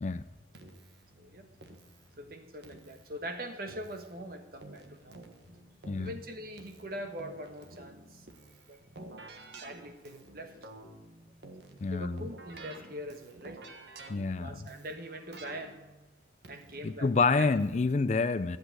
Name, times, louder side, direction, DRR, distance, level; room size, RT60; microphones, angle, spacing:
Keyboard (musical), 0.5-18.0, right 2 dB, 70° right, 1.4 m, -52 dB
voice 1, 1.2-1.5 2.2-5.2 6.0-8.2 8.7-8.8 9.5-10.7 11.9-13.6 14.4-15.8 16.5-17.5, equal, 55° right, 1.3 m, -42 dB
voice 2, 11.8-12.3 14.1-14.7 16.8-18.6, left 4 dB, 40° left, 0.4 m, -28 dB
11.0 x 8.1 x 8.0 m
head